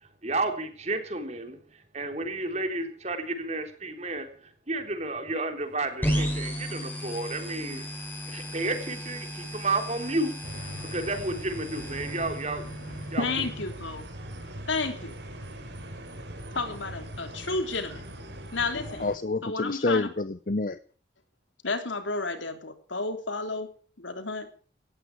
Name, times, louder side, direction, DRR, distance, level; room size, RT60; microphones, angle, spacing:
voice 1, 0.2-12.7 13.1-13.5, right 2 dB, 35° right, 3.6 m, -32 dB
sound 1, 6.0-13.6, equal, 10° left, 5.1 m, -34 dB
sound 2, 10.4-19.2, right 1 dB, 70° right, 4.8 m, -41 dB
voice 2, 13.2-14.0 14.7-15.1 16.5-18.0 18.5-19.1 19.4-20.1 21.6-23.7 24.0-24.5, left 3 dB, 85° left, 3.3 m, -31 dB
voice 3, 18.8-20.8, left 3 dB, 45° left, 0.7 m, -28 dB
18.0 x 14.5 x 4.7 m
head